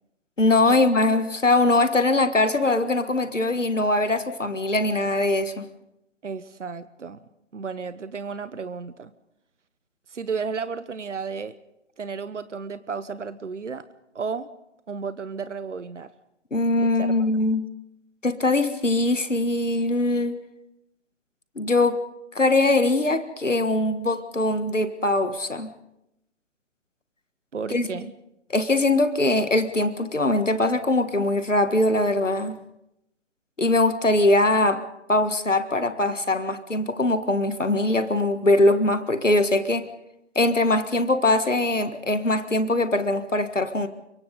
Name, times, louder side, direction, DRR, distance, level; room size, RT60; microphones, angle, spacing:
voice 1, 0.4-5.7 16.5-17.7 18.2-20.4 21.6-22.0 22.3-25.7 27.7-27.9 28.5-32.6 33.6-34.8 35.1-39.9 40.3-43.9, left 2 dB, 85° left, 10 dB, 1.7 m, -22 dB
voice 2, 6.2-7.2 7.5-9.1 10.1-11.5 12.0-13.8 14.1-14.5 14.9-16.1 16.8-17.3 27.5-28.1, right 5 dB, 75° right, 14 dB, 1.0 m, -33 dB
29.0 x 24.0 x 3.9 m, 0.84 s
figure-of-eight pair, 130°, 36 cm